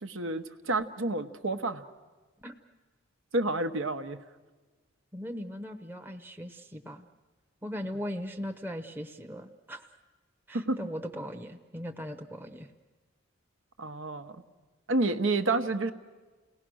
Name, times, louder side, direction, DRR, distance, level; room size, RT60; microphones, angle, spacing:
voice 1, 0.0-1.8 3.3-4.2 10.5-10.8 13.8-14.4 14.9-15.9, right 2 dB, 80° right, 9 dB, 1.1 m, -29 dB
voice 2, 5.1-7.0 7.6-9.8 10.5-12.7, equal, 10° right, 4 dB, 0.8 m, -39 dB
29.0 x 18.5 x 6.3 m, 1.3 s
head